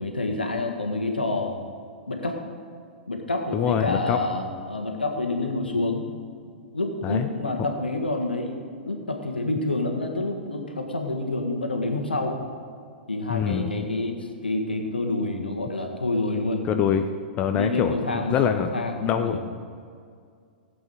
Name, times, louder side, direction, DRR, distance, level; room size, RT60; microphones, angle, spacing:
voice 1, 0.0-1.5 2.1-2.4 3.1-6.1 6.4-8.6 8.8-12.4 13.1-16.7 17.5-19.4, left 2 dB, 80° left, 3 dB, 1.6 m, -28 dB
voice 2, 3.5-4.2 7.0-7.3 13.3-13.9 16.7-17.0 17.4-18.7 19.0-19.4, left 8 dB, 25° left, 7 dB, 0.6 m, -24 dB
17.0 x 8.3 x 4.8 m, 2.2 s
figure-of-eight pair, 105°, 5 cm